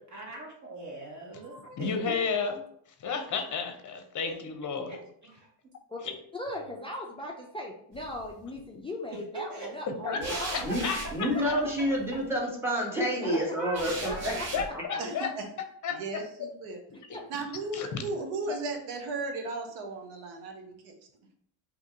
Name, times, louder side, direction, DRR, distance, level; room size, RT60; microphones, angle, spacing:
voice 1, 0.1-2.2 4.2-4.3 4.9-5.5 9.1-9.7 10.2-10.4 11.4-11.5 13.2-14.4, right 2 dB, 35° right, -2 dB, 1.5 m, -41 dB
voice 2, 1.8-2.6 3.0-4.9 6.1-6.2 10.0-10.2 10.5-11.6 14.5-15.3 15.8-16.2 17.1-17.2 17.7-17.9, left 5 dB, 35° left, 6 dB, 0.8 m, -32 dB
voice 3, 6.3-10.7 14.0-14.5 17.1-17.2 18.1-18.6, left 1 dB, 10° left, 0 dB, 0.4 m, -39 dB
sound 1, 7.9-8.5 10.2-12.2 13.7-14.7, right 2 dB, 90° right, 1.4 m, -38 dB
voice 4, 11.1-13.9 14.2-14.3, equal, 5° right, -3 dB, 1.3 m, -28 dB
voice 5, 15.0-15.5 15.9-16.8 17.3-20.9, right 3 dB, 70° right, 3 dB, 1.0 m, -36 dB
2.9 x 2.6 x 3.7 m, 0.65 s
supercardioid pair, 85°, 49 cm